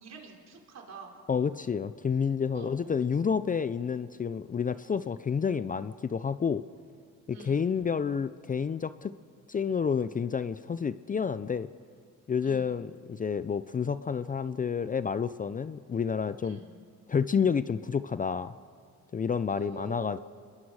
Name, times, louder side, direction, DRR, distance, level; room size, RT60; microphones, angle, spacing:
voice 1, 0.0-1.2 2.5-2.8 7.3-7.7 12.4-12.7 16.4-16.7 19.5-20.2, right 4 dB, 60° right, 1 dB, 3.7 m, -46 dB
voice 2, 1.3-6.6 7.3-9.1 9.5-11.7 12.3-16.6 17.1-18.5 19.1-20.2, left 6 dB, 25° left, 13 dB, 0.5 m, -29 dB
28.0 x 21.5 x 4.8 m, 2.1 s
cardioid pair, 90°, 30 cm